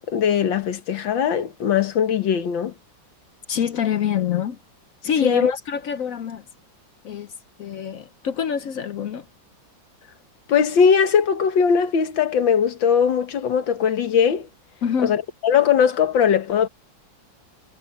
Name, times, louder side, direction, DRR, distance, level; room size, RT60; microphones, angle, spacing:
voice 1, 0.0-2.7 5.2-5.5 10.5-14.5 15.0-16.7, left 7 dB, 80° left, 2.1 m, -20 dB
voice 2, 3.5-4.6 5.0-6.4 7.0-7.3 7.6-9.3 14.8-15.2, left 8 dB, 60° left, 0.9 m, -25 dB
omnidirectional pair, 2.0 m